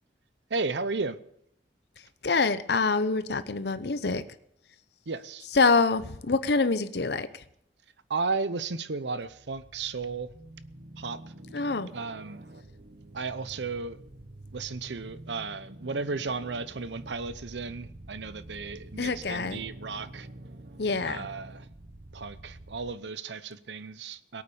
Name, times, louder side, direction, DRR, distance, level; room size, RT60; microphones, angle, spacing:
voice 1, 0.5-1.2 5.1-5.5 8.1-10.3 11.0-11.2 11.9-12.4 13.1-14.0 14.5-20.3 21.0-21.7 22.1-24.4, right 4 dB, 80° right, 15 dB, 0.8 m, -34 dB
voice 2, 2.2-4.2 5.5-7.4 11.5-11.9 19.0-19.6 20.8-21.3, left 4 dB, 70° left, 12 dB, 0.7 m, -26 dB
sound 1, 9.2-22.9, right 1 dB, 60° right, 1.1 m, -47 dB
18.0 x 8.6 x 7.0 m, 0.74 s
head